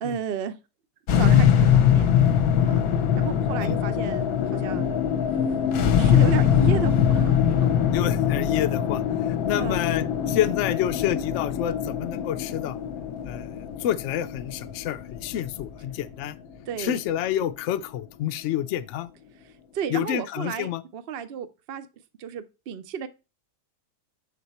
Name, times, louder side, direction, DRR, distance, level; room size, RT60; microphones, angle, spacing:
voice 1, 0.0-0.6 1.2-2.1 2.6-2.8 3.2-4.9 5.8-7.7 9.5-9.8 16.7-17.0 19.7-21.9 22.2-23.1, right 7 dB, 65° right, 0.6 m, -33 dB
sound 1, 1.1-17.5, left 9 dB, 65° left, 1.0 m, -22 dB
voice 2, 7.9-9.0 9.4-12.8 13.3-16.4 16.8-19.1 19.9-20.8, left 12 dB, 80° left, 0.6 m, -28 dB
6.8 x 4.3 x 4.2 m
omnidirectional pair, 1.8 m